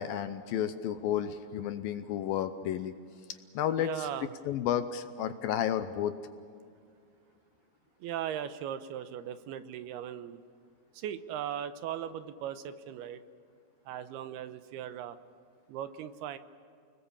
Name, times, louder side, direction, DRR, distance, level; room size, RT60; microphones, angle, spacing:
voice 1, 0.0-2.9 3.5-4.1 4.5-6.1, left 10 dB, 80° left, 10 dB, 2.3 m, -32 dB
voice 2, 3.8-4.3 8.0-10.4 10.9-13.2 13.9-15.2 15.7-16.4, right 10 dB, 80° right, 11 dB, 2.8 m, -38 dB
30.0 x 20.5 x 7.2 m, 2.3 s
omnidirectional pair, 4.7 m